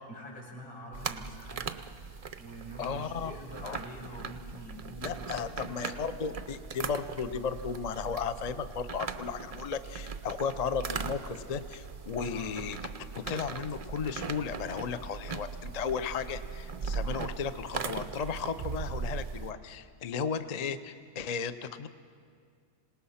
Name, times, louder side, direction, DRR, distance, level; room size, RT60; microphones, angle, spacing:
voice 1, 0.1-1.7 2.1-6.0 12.3-12.5, equal, 80° left, -3 dB, 5.4 m, -46 dB
sound 1, 0.9-19.5, right 5 dB, 70° right, 0.3 m, -39 dB
voice 2, 2.8-3.3 3.6-3.8 5.0-12.8 13.1-21.9, left 6 dB, 50° left, 11 dB, 0.4 m, -35 dB
26.5 x 18.5 x 5.7 m, 2.2 s
omnidirectional pair, 1.6 m